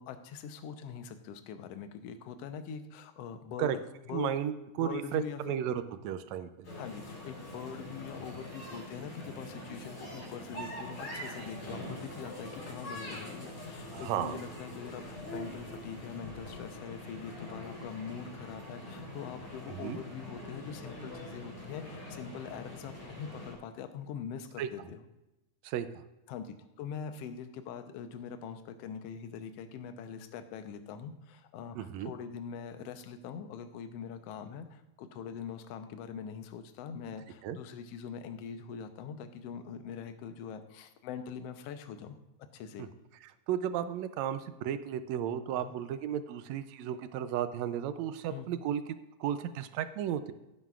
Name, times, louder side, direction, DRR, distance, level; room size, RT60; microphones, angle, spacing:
voice 1, 0.0-3.8 4.1-4.3 4.8-5.5 6.7-25.0 26.3-42.2 42.5-42.9 45.6-45.7 48.3-48.5, left 7 dB, 70° left, 8 dB, 1.6 m, -43 dB
voice 2, 4.1-6.5 13.9-14.4 19.7-20.0 24.6-24.7 25.6-26.0 31.7-32.1 37.4-37.6 42.8-42.9 43.5-48.8 49.2-50.3, right 10 dB, 75° right, 11 dB, 1.8 m, -34 dB
sound 1, 6.6-23.5, left 1 dB, 50° left, 5.0 m, -44 dB
15.5 x 9.4 x 2.4 m, 0.97 s
omnidirectional pair, 3.4 m